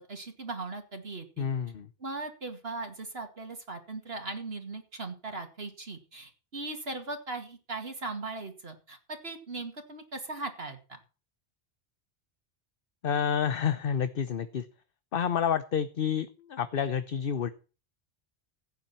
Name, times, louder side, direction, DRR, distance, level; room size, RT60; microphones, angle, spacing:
voice 1, 0.0-1.5 2.0-11.0, right 3 dB, 65° right, 5 dB, 2.4 m, -39 dB
voice 2, 1.4-1.9 13.0-14.6 15.1-17.5, left 7 dB, 60° left, 12 dB, 1.0 m, -29 dB
15.5 x 9.1 x 4.4 m, 0.34 s
omnidirectional pair, 1.1 m